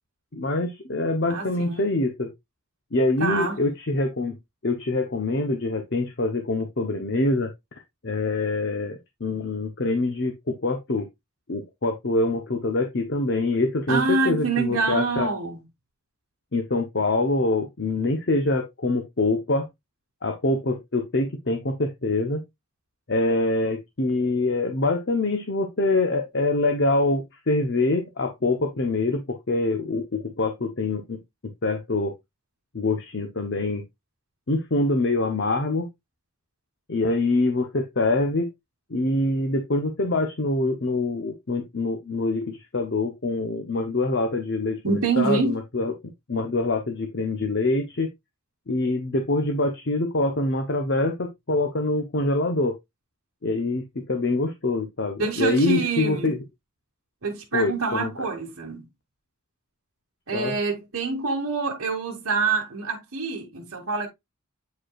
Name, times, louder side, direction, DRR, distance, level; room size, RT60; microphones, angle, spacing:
voice 1, 0.3-2.3 2.9-4.4 4.6-11.1 11.5-15.3 16.5-19.7 20.2-22.4 23.1-31.2 31.6-32.1 32.7-33.8 34.5-35.9 36.9-38.5 38.9-45.9 46.3-48.1 48.7-52.7 53.4-56.4 57.5-58.1 60.3-60.6, left 2 dB, 55° left, 0.8 m, -25 dB
voice 2, 1.3-1.9 3.2-3.6 13.9-15.6 44.8-45.6 55.2-56.4 57.2-58.9 60.3-64.1, right 4 dB, 65° right, 1.3 m, -26 dB
8.2 x 5.1 x 2.3 m
head